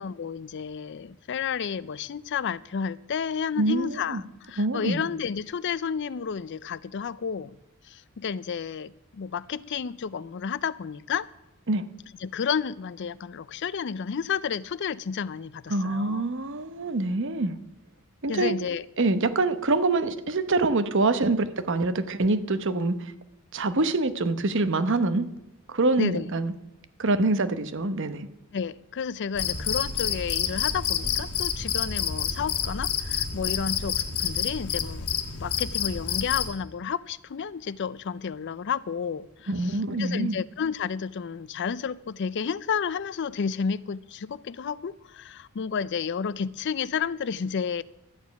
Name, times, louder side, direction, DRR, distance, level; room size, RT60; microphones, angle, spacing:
voice 1, 0.0-7.6 7.8-11.3 12.2-16.2 18.3-18.8 26.0-26.3 28.5-35.1 35.4-47.8, left 6 dB, 55° left, 19 dB, 0.4 m, -31 dB
voice 2, 3.6-4.2 4.6-5.0 11.7-11.8 15.7-17.6 18.2-18.5 19.0-23.1 23.5-25.3 25.7-26.5 27.0-28.3 39.5-40.4, right 2 dB, 60° right, 12 dB, 0.9 m, -25 dB
Cricket, 29.4-36.5, left 8 dB, 80° left, 1.4 m, -28 dB
13.0 x 9.4 x 5.8 m, 0.95 s
head